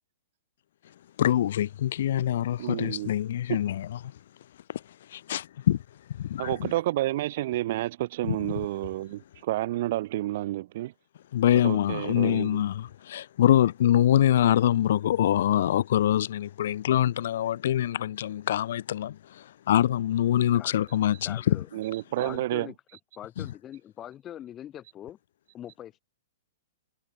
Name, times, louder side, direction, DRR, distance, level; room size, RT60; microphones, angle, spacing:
voice 1, 1.2-3.9 4.7-4.8 5.1-5.8 6.2-6.5 8.3-8.4 11.3-21.6 23.4-23.5, left 11 dB, 55° left, 1.6 m, -24 dB
voice 2, 2.6-3.1 6.4-10.9 11.6-12.6 21.7-22.7, right 15 dB, 40° right, 1.2 m, -30 dB
voice 3, 20.5-21.0 21.2-21.7 22.2-22.8 23.2-25.2 25.5-26.0, left 11 dB, 15° left, 3.7 m, -42 dB
hypercardioid pair, 170°, 0 cm